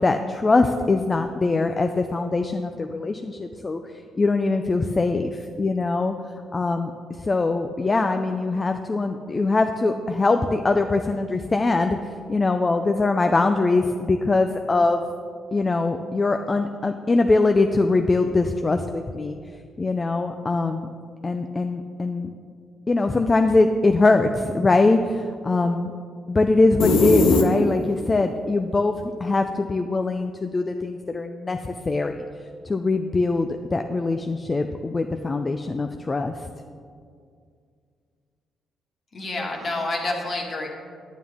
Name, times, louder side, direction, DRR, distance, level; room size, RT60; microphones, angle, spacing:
voice 1, 0.0-3.8 4.2-6.1 6.5-6.9 7.2-12.0 12.3-15.0 15.5-19.4 19.8-20.9 21.2-22.3 22.9-25.9 26.3-28.9 29.2-31.6 31.8-32.2 32.7-36.5, left 3 dB, 30° left, 6 dB, 0.4 m, -22 dB
sound 1, 26.8-28.0, left 3 dB, 85° left, 0.9 m, -19 dB
voice 2, 39.1-40.7, left 2 dB, 45° left, 0 dB, 1.8 m, -28 dB
9.3 x 9.0 x 3.6 m, 2.2 s
cardioid pair, 90°, 0 cm